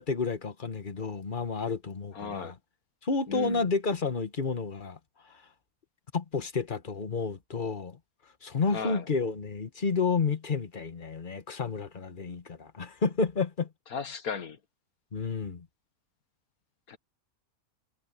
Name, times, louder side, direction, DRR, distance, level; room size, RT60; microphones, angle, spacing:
voice 1, 0.0-2.5 3.0-5.0 6.1-8.0 8.4-13.7 15.1-15.7, left 4 dB, 35° left, 1.5 m, -30 dB
voice 2, 2.1-2.5 3.3-3.7 8.7-9.1 13.9-14.6 16.9-17.0, left 5 dB, 80° left, 2.0 m, -36 dB
omnidirectional pair, 1.5 m